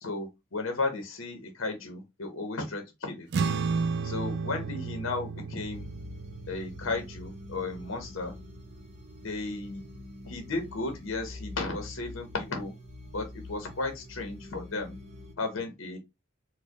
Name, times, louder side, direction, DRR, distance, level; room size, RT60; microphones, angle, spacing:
voice 1, 0.0-3.3 4.0-5.9 6.5-8.4 9.2-9.8 10.2-12.7 13.1-15.0 15.4-16.0, left 3 dB, 65° left, 0.8 m, -34 dB
sound 1, 3.3-10.0, right 4 dB, 55° right, 0.3 m, -34 dB
sound 2, 5.6-15.3, left 2 dB, 35° right, 0.9 m, -46 dB
4.2 x 2.2 x 2.9 m
head